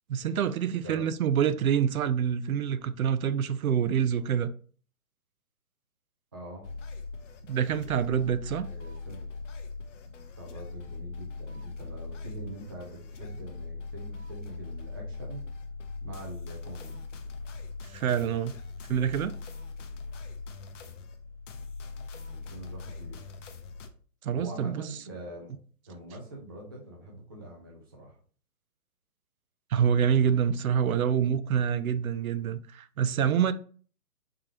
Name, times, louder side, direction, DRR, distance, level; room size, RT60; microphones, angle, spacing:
voice 1, 0.1-4.5 7.5-8.7 17.9-18.5 18.9-19.3 24.2-24.8 29.7-33.5, right 8 dB, 70° right, 0.5 m, -26 dB
voice 2, 0.6-1.0 6.3-6.7 8.6-9.3 10.0-15.4 16.0-17.0 22.3-23.2 24.3-25.5 25.9-28.2, right 1 dB, 15° right, 0.4 m, -44 dB
sound 1, 6.6-23.9, left 4 dB, 55° left, 0.7 m, -41 dB
3.8 x 3.4 x 2.9 m
hypercardioid pair, 145°, 45 cm